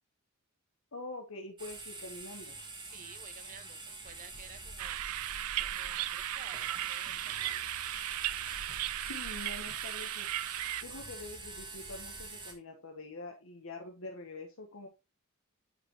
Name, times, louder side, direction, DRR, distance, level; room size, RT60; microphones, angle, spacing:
voice 1, 0.9-2.6 9.1-10.3 10.8-14.9, left 2 dB, 70° left, 1.2 m, -45 dB
sound 1, 1.6-12.5, right 3 dB, 20° right, 1.7 m, -46 dB
voice 2, 2.8-5.0 5.6-7.5 10.8-11.0, right 6 dB, 40° right, 0.6 m, -53 dB
sound 2, 4.0-12.3, equal, 55° left, 2.2 m, -53 dB
sound 3, 4.8-10.8, right 14 dB, 90° right, 0.4 m, -36 dB
9.8 x 4.5 x 3.1 m
head